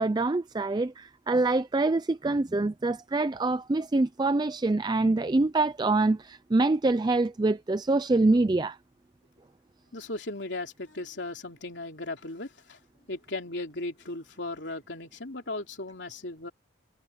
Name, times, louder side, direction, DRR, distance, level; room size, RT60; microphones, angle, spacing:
voice 1, 0.0-8.8, right 2 dB, 25° right, 0.4 m, -25 dB
voice 2, 9.9-12.8 13.1-16.5, left 2 dB, 75° left, 3.2 m, -37 dB
head